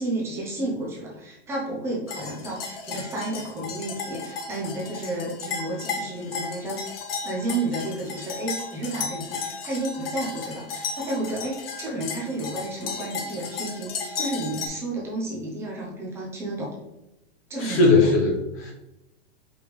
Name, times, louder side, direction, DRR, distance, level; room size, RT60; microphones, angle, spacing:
voice 1, 0.0-6.9 7.2-16.7 17.5-18.1, right 2 dB, 10° right, -3 dB, 0.6 m, -31 dB
sound 1, 2.1-14.7, left 5 dB, 60° left, 0.9 m, -34 dB
voice 2, 17.6-18.7, left 3 dB, 25° left, -1 dB, 1.1 m, -19 dB
5.2 x 3.2 x 3.2 m, 0.92 s
supercardioid pair, 170°, 32 cm